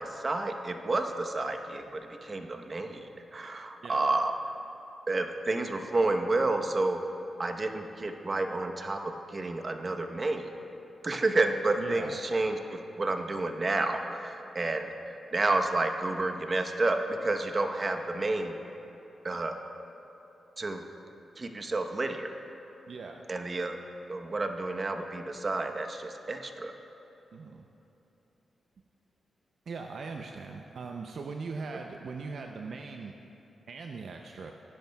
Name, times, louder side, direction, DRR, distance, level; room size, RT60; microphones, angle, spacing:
voice 1, 0.0-4.5 5.1-7.0 7.4-10.5 11.0-18.6 19.2-19.6 20.6-20.8 21.4-22.3 23.3-23.8 24.1-26.7, right 2 dB, 45° right, 5 dB, 0.9 m, -30 dB
voice 2, 11.8-12.2 22.9-23.2 27.3-27.7 29.7-33.1 33.7-34.5, right 4 dB, 70° right, 3 dB, 0.5 m, -40 dB
18.5 x 10.5 x 2.3 m, 3.0 s
supercardioid pair, 45°, 0 cm